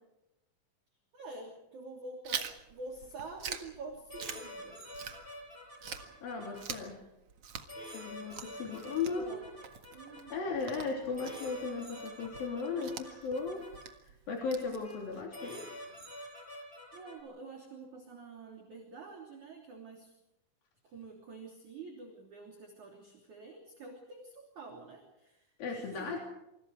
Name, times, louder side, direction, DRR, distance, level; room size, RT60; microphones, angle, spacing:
voice 1, 1.1-4.8 8.3-9.4 9.9-10.5 16.9-20.1 20.8-26.2, right 3 dB, 40° right, 2 dB, 4.1 m, -48 dB
Chewing mastication, 2.2-5.5 5.8-15.3, right 7 dB, 80° right, 1.3 m, -45 dB
sound 1, 4.1-6.8 7.7-10.3 11.2-13.8 14.8-15.0 15.3-17.2, equal, 10° left, 6.7 m, -47 dB
voice 2, 6.2-7.0 7.9-9.3 10.3-13.6 14.0-15.8 25.6-26.2, left 4 dB, 50° left, 1 dB, 4.6 m, -36 dB
28.0 x 27.0 x 4.7 m, 0.89 s
omnidirectional pair, 5.7 m